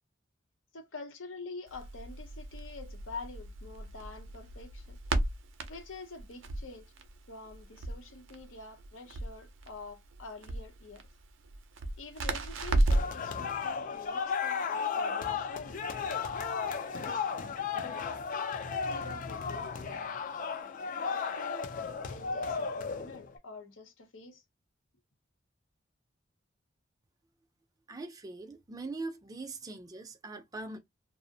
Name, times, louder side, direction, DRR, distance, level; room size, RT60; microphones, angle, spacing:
voice 1, 0.7-5.0 5.7-6.9 7.3-11.0 12.0-14.7 15.0-17.2 17.6-18.0 18.6-19.9 21.0-24.4, left 3 dB, 80° left, 0.7 m, -47 dB
Crackle, 1.7-13.2, right 2 dB, 75° right, 0.5 m, -34 dB
sound 1, 12.9-23.4, left 5 dB, 45° left, 0.4 m, -34 dB
voice 2, 27.9-30.8, right 3 dB, 20° right, 0.4 m, -41 dB
2.5 x 2.0 x 2.6 m
head